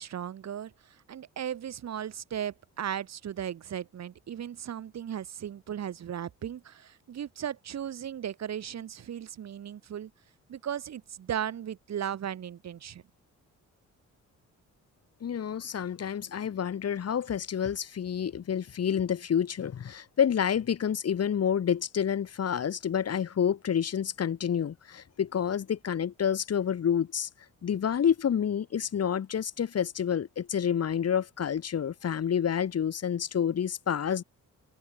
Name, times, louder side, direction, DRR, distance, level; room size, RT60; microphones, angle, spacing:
voice 1, 0.0-10.1 10.5-13.0, right 9 dB, 60° right, 3.2 m, -36 dB
voice 2, 15.2-27.3 27.6-34.2, left 8 dB, 55° left, 5.0 m, -28 dB
cardioid pair, 110°, 30 cm